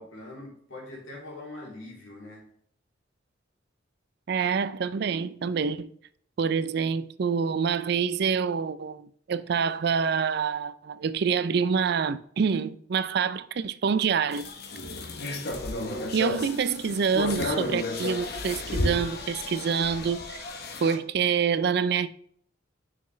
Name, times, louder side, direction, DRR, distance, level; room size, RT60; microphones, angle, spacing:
voice 1, 0.0-2.5 15.7-16.2, left 2 dB, 85° left, 3.0 m, -42 dB
voice 2, 4.3-5.9 6.4-14.5 16.1-20.4 20.8-22.1, right 6 dB, 55° right, 0.4 m, -26 dB
sound 1, 14.3-21.0, left 2 dB, 55° left, 0.9 m, -32 dB
6.3 x 5.9 x 3.2 m
head